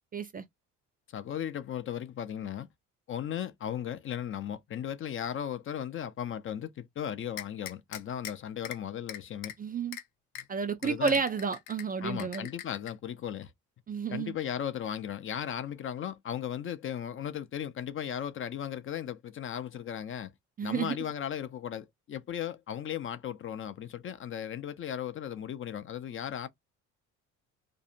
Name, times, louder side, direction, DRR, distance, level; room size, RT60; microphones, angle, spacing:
voice 1, 0.1-0.4 9.6-10.0 10.5-12.5 13.9-14.3 20.6-21.0, right 5 dB, 25° right, 0.3 m, -31 dB
voice 2, 1.1-2.7 3.1-9.5 10.4-10.5 10.8-11.2 12.0-13.5 14.1-20.3 20.6-26.5, left 9 dB, 40° left, 0.4 m, -36 dB
sound 1, 7.4-8.3 8.6-8.8 9.1-9.5 9.9-10.0 10.4-10.5 10.8-11.8 12.2-12.9, left 12 dB, 85° left, 0.5 m, -40 dB
2.6 x 2.0 x 2.5 m
supercardioid pair, 85°, 33 cm